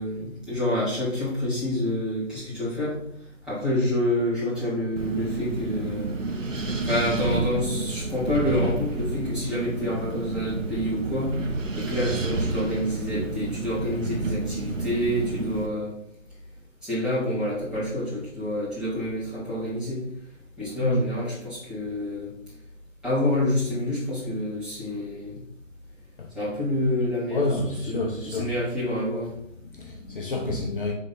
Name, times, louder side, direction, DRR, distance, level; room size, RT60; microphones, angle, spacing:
voice 1, 0.0-3.0 3.4-6.1 6.8-11.4 11.7-15.9 16.8-20.0 20.6-22.3 23.0-25.4 26.3-27.5 27.9-29.4 30.5-30.6, left 1 dB, ahead, 2.0 m, -27 dB
Wind, 5.0-15.7, right 2 dB, 75° right, 1.5 m, -30 dB
voice 2, 27.3-28.5 29.6-30.9, left 3 dB, 45° left, 0.9 m, -28 dB
6.8 x 4.0 x 5.3 m
figure-of-eight pair, 160°, 39 cm